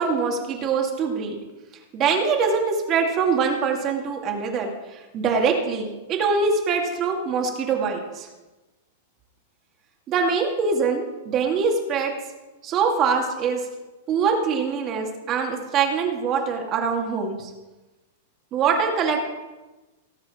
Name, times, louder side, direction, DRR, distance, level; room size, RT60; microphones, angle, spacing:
voice 1, 0.0-1.4 1.9-8.3 10.1-12.1 12.6-13.7 14.1-17.5 18.5-19.2, right 5 dB, 30° right, 2 dB, 2.1 m, -23 dB
18.0 x 6.2 x 4.9 m, 1.1 s
supercardioid pair, 145°, 0 cm